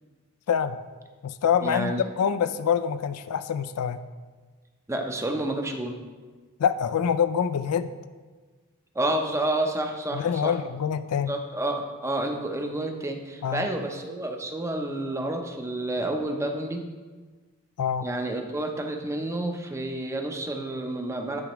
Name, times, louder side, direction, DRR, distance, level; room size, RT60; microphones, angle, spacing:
voice 1, 0.5-0.8 1.2-4.0 6.6-7.9 10.1-11.3 13.4-13.7 17.8-18.1, left 7 dB, 80° left, 13 dB, 0.4 m, -25 dB
voice 2, 1.6-2.1 4.9-6.0 8.9-10.5 11.3-16.8 18.0-21.4, right 1 dB, 15° right, 3 dB, 0.6 m, -29 dB
10.5 x 4.9 x 3.0 m, 1.4 s
head